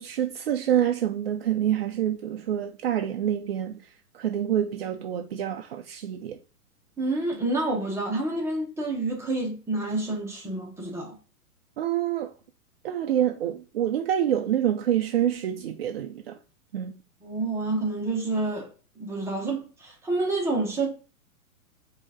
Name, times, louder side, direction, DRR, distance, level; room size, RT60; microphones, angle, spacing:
voice 1, 0.0-6.4 11.8-12.3 12.8-16.4 16.7-17.0, right 10 dB, 45° right, 0.4 m, -27 dB
voice 2, 7.0-11.2 17.2-18.7 19.0-20.9, right 2 dB, 5° right, 1.1 m, -28 dB
5.0 x 2.8 x 3.5 m
figure-of-eight pair, 115°, 44 cm